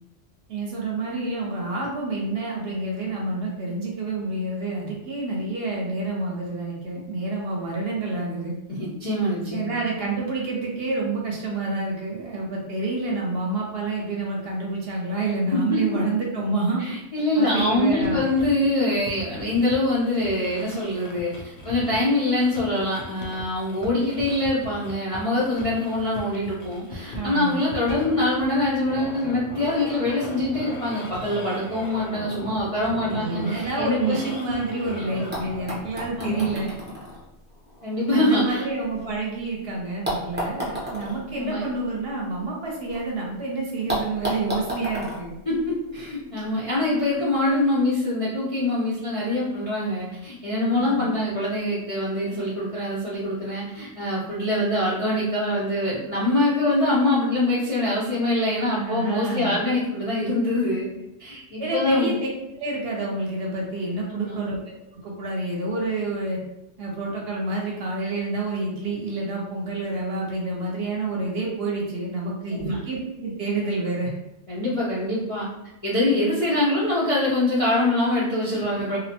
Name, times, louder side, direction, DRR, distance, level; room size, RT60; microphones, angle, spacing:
voice 1, 0.5-8.5 9.5-16.8 17.4-18.2 27.1-27.6 33.0-36.8 38.1-45.3 50.7-51.1 58.7-59.5 61.6-62.2 62.5-66.4 66.8-74.1 78.5-78.6, right 2 dB, 60° right, -2 dB, 0.8 m, -28 dB
voice 2, 8.7-9.8 15.5-15.6 16.8-21.3 21.6-34.2 36.2-36.5 37.8-38.7 41.4-41.6 45.5-60.9 61.2-62.1 64.1-64.4 72.5-72.8 74.5-75.5 75.8-79.0, left 1 dB, 50° left, -8 dB, 0.4 m, -24 dB
sound 1, 17.6-36.5, left 1 dB, 65° left, 0.8 m, -38 dB
sound 2, 35.3-39.4 40.0-43.0 43.3-43.4 43.9-46.3 47.3-47.4, equal, 15° right, 0.5 m, -34 dB
2.6 x 2.1 x 2.8 m, 0.92 s
omnidirectional pair, 1.3 m